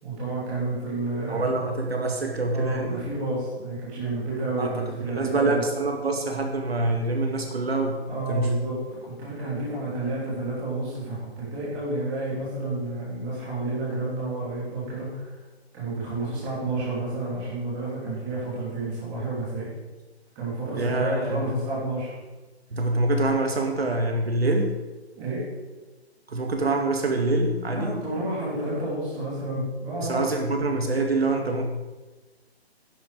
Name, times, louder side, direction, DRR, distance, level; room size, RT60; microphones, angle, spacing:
voice 1, 0.0-1.6 2.5-5.6 8.1-15.3 15.7-19.7 20.3-22.1 25.2-25.4 27.7-30.2, right 2 dB, 10° right, -9 dB, 2.7 m, -30 dB
voice 2, 1.3-3.0 4.6-8.0 8.3-8.5 20.8-21.5 22.7-24.7 26.3-28.0 30.0-31.7, right 2 dB, 65° right, 3 dB, 2.2 m, -25 dB
11.0 x 10.5 x 4.8 m, 1.2 s
hypercardioid pair, 175°, 33 cm